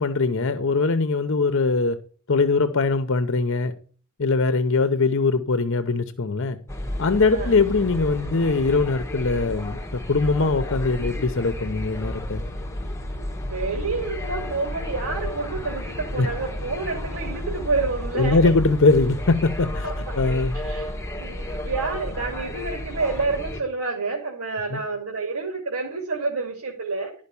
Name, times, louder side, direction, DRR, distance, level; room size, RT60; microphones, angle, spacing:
voice 1, 0.0-2.0 2.3-3.7 4.2-6.6 7.0-12.4 16.2-16.3 18.1-19.9 20.1-20.6 24.7-24.8, left 3 dB, 60° left, 0.8 m, -21 dB
sound 1, 6.7-23.6, left 1 dB, 15° left, 1.3 m, -32 dB
voice 2, 13.2-18.4 19.8-19.9 20.5-27.2, right 3 dB, 90° right, 2.5 m, -29 dB
12.0 x 5.3 x 6.9 m
head